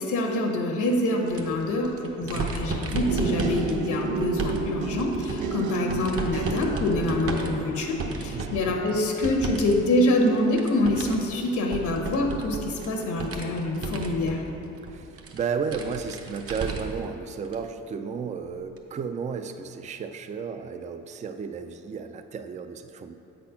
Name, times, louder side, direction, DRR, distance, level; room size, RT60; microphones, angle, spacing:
voice 1, 0.0-14.4, left 1 dB, 75° left, 1 dB, 1.1 m, -26 dB
sound 1, 1.2-9.7 10.0-17.0 17.4-17.6 18.8-18.9, right 3 dB, 50° right, 0.9 m, -34 dB
sound 2, 3.1-14.9 15.6-16.1 16.5-16.7, right 5 dB, 90° right, 0.5 m, -35 dB
voice 2, 8.3-8.8 14.8-23.2, right 6 dB, 25° right, 8 dB, 0.3 m, -33 dB
7.4 x 4.2 x 5.6 m, 2.9 s
cardioid pair, 90°, 30 cm